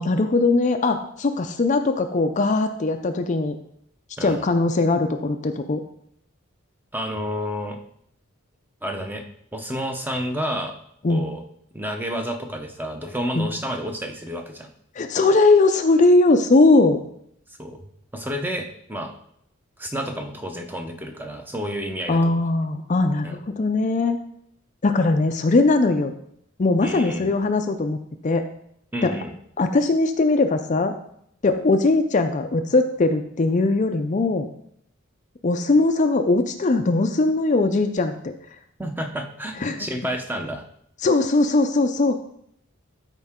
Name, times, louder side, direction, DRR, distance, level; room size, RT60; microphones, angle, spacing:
voice 1, 0.0-3.5 4.2-5.8 11.0-11.3 13.4-13.5 15.0-17.0 22.1-24.2 24.8-26.1 26.6-28.4 29.0-29.1 29.6-30.9 31.4-34.5 35.4-38.3 39.6-39.8 41.0-42.2, left 3 dB, 35° left, 7 dB, 0.4 m, -20 dB
voice 2, 6.9-7.8 8.8-9.2 9.5-10.8 11.1-11.4 11.7-14.7 17.5-17.8 18.1-19.1 19.8-22.4 23.2-23.4 26.8-27.3 28.9-29.3 38.8-40.6, equal, 10° right, 4 dB, 0.8 m, -30 dB
13.0 x 4.5 x 3.7 m, 0.70 s
head